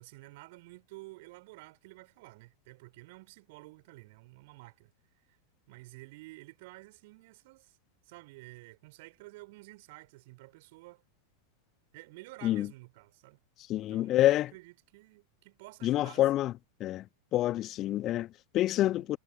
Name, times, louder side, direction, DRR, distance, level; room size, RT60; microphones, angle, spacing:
voice 1, 0.0-4.9 5.3-5.4 5.7-7.8 8.0-11.0 11.9-13.4 13.7-16.2 18.8-19.0, right 22 dB, 50° right, 4.2 m, -51 dB
voice 2, 13.7-14.5 15.8-16.5 16.8-17.1 17.3-19.2, left 14 dB, 35° left, 1.3 m, -27 dB
figure-of-eight pair, 90°, 0 cm